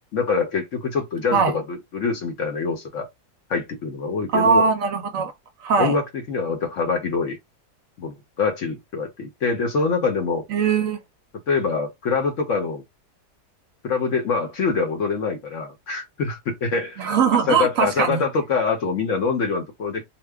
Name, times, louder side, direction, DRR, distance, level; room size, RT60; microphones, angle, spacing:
voice 1, 0.1-3.1 3.5-4.7 5.8-7.4 8.0-10.5 11.5-12.8 13.8-17.1 17.3-20.0, left 4 dB, 60° left, 0.9 m, -25 dB
voice 2, 4.3-5.3 5.6-5.9 10.5-11.0 17.0-18.2, right 6 dB, 65° right, 0.9 m, -20 dB
2.9 x 2.1 x 3.3 m
omnidirectional pair, 1.7 m